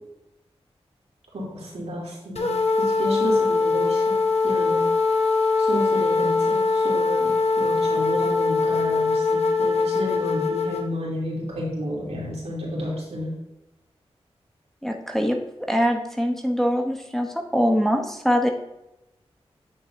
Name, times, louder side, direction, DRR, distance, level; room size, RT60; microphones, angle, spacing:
voice 1, 1.3-4.2 4.4-4.9 5.6-7.3 7.6-13.3, equal, 80° right, -4 dB, 2.8 m, -31 dB
sound 1, 2.4-10.9, left 3 dB, 70° left, 0.9 m, -22 dB
voice 2, 14.8-18.5, equal, 5° left, 2 dB, 0.8 m, -23 dB
8.6 x 6.8 x 2.6 m, 0.90 s
cardioid pair, 65°, 11 cm